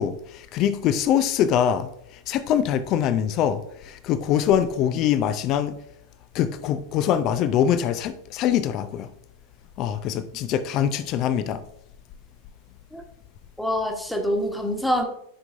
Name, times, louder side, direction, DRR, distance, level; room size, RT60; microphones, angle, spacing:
voice 1, 0.0-1.9 2.3-5.7 6.3-9.1 9.8-11.6, left 9 dB, 35° left, 0.5 m, -23 dB
voice 2, 13.6-15.1, equal, ahead, 1.3 m, -25 dB
11.5 x 6.0 x 2.6 m
figure-of-eight pair, 90°, 0 cm